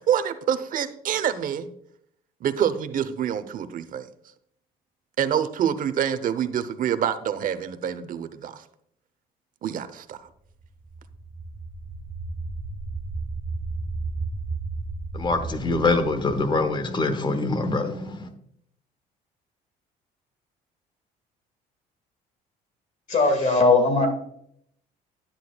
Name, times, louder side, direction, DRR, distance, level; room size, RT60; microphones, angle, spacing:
voice 1, 0.1-1.7 2.4-4.1 5.2-8.6 9.6-10.2, right 9 dB, 55° right, 11 dB, 0.8 m, -26 dB
sound 1, 10.6-17.5, right 3 dB, 25° right, 1.5 m, -34 dB
voice 2, 15.1-18.3, left 3 dB, 25° left, 9 dB, 1.1 m, -24 dB
voice 3, 23.1-24.1, left 3 dB, 45° left, 4 dB, 2.0 m, -19 dB
10.5 x 9.8 x 2.3 m, 0.69 s
cardioid pair, 110°, 17 cm